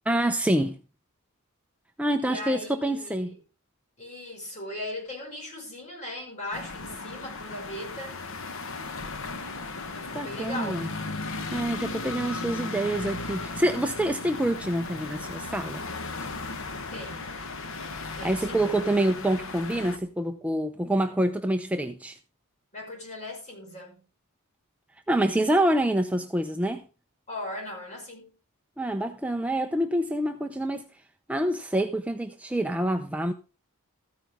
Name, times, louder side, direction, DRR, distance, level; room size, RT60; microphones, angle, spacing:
voice 1, 0.1-0.8 2.0-3.3 10.1-10.9 11.5-15.8 18.2-22.2 25.1-26.9 28.8-30.9 31.3-33.3, right 1 dB, 5° right, 0.6 m, -26 dB
voice 2, 2.2-3.4 4.0-8.2 9.9-10.8 16.9-17.4 18.1-18.7 22.7-24.0 27.3-28.3, left 1 dB, 35° left, 5.8 m, -38 dB
sound 1, 6.5-20.0, left 3 dB, 65° left, 1.2 m, -36 dB
14.5 x 9.5 x 3.5 m
head